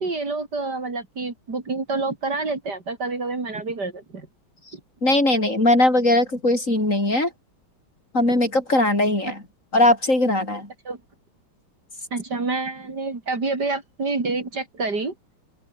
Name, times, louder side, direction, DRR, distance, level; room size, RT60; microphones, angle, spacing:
voice 1, 0.0-4.3 10.9-11.0 12.1-15.1, right 3 dB, 55° right, 4.1 m, -28 dB
voice 2, 5.0-7.3 8.1-9.4 9.7-10.7, left 1 dB, 40° left, 6.8 m, -19 dB
open air
omnidirectional pair, 2.1 m